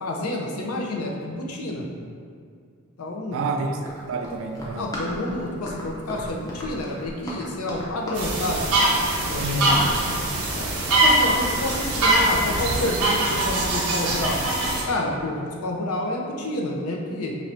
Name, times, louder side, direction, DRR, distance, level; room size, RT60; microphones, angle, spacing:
voice 1, 0.0-1.9 3.0-3.4 4.8-8.7 9.3-9.7 10.6-10.7 11.0-14.4 14.9-17.4, left 1 dB, 85° left, 0 dB, 0.5 m, -29 dB
voice 2, 3.3-4.9 9.4-9.8, right 2 dB, 65° right, 4 dB, 0.3 m, -28 dB
Run, 3.8-14.3, left 1 dB, 15° left, 0.5 m, -36 dB
sound 1, 8.1-14.8, right 2 dB, 90° right, 0.8 m, -22 dB
3.1 x 2.6 x 4.4 m, 2.2 s
head